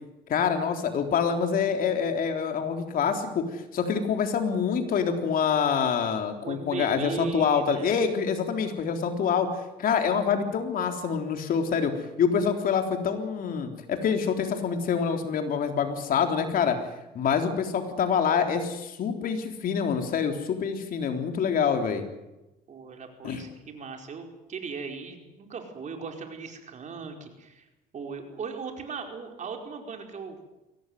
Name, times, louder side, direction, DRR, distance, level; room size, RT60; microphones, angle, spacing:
voice 1, 0.3-9.5 9.8-11.9 12.2-16.8 17.1-22.0 23.2-23.4, left 6 dB, 55° left, 5 dB, 3.7 m, -26 dB
voice 2, 6.4-8.0 22.7-27.7 27.9-30.4, right 5 dB, 45° right, 4 dB, 5.0 m, -37 dB
23.0 x 18.0 x 9.4 m, 0.98 s
cardioid pair, 110°, 17 cm